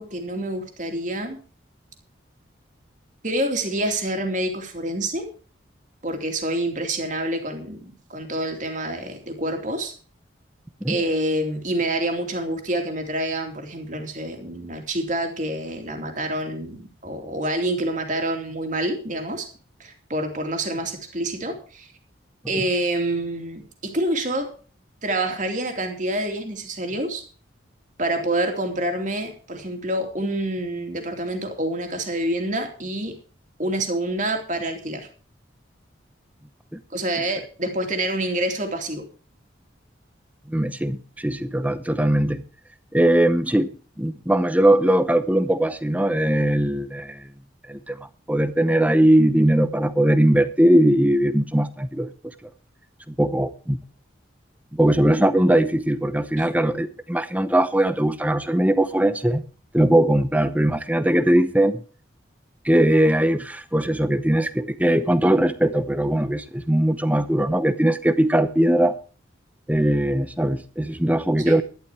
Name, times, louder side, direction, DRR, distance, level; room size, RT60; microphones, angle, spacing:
voice 1, 0.0-1.4 3.2-5.3 6.0-9.9 10.9-19.5 19.8-21.9 22.5-24.5 25.0-27.2 28.0-33.2 33.6-35.1 36.9-39.1 71.4-71.6, right 1 dB, 40° right, 2.7 m, -27 dB
voice 2, 40.5-42.4 42.9-43.7 44.0-47.3 47.7-52.1 53.1-53.8 54.7-59.4 59.7-61.8 62.6-68.9 69.7-71.6, right 1 dB, 10° right, 0.7 m, -20 dB
11.5 x 11.5 x 4.8 m
head